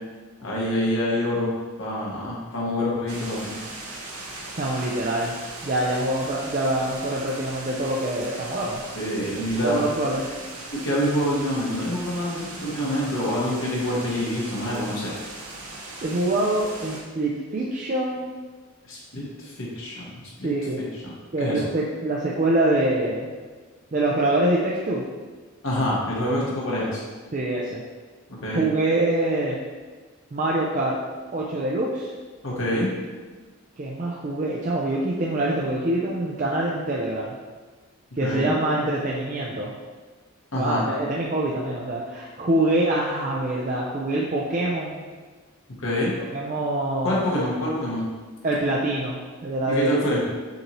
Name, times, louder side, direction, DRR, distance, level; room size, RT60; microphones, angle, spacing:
voice 1, 0.4-1.5 1.8-3.5 8.9-9.8 10.7-15.1 18.9-20.5 20.8-21.1 21.4-21.6 25.6-27.0 28.3-28.7 32.4-32.9 38.2-38.5 40.5-40.8 45.8-46.1 47.0-48.1 49.7-50.2, left 1 dB, 70° left, -5 dB, 1.3 m, -26 dB
sound 1, 3.1-17.0, right 2 dB, 90° right, 0.8 m, -39 dB
voice 2, 4.6-5.4 5.6-8.8 9.6-10.3 16.0-18.3 19.2-19.3 20.4-20.8 21.3-23.3 23.9-25.0 27.3-27.8 28.5-29.6 30.3-31.0 31.3-32.1 33.8-37.3 38.2-39.7 40.5-45.0 46.3-47.2 48.4-50.0, right 1 dB, 35° right, -4 dB, 0.4 m, -25 dB
6.5 x 2.7 x 3.0 m, 1.4 s
head